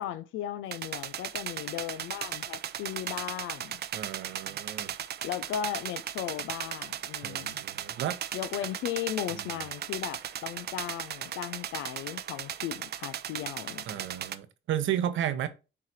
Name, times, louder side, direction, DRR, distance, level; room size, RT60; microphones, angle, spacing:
voice 1, 0.0-3.8 5.2-7.6 8.3-13.8, left 11 dB, 90° left, 0.6 m, -36 dB
sound 1, 0.7-14.4, right 10 dB, 55° right, 0.6 m, -37 dB
voice 2, 3.9-4.9 7.2-8.2 13.9-15.5, right 10 dB, 75° right, 0.9 m, -33 dB
8.5 x 3.3 x 4.4 m
cardioid pair, 90°, 20 cm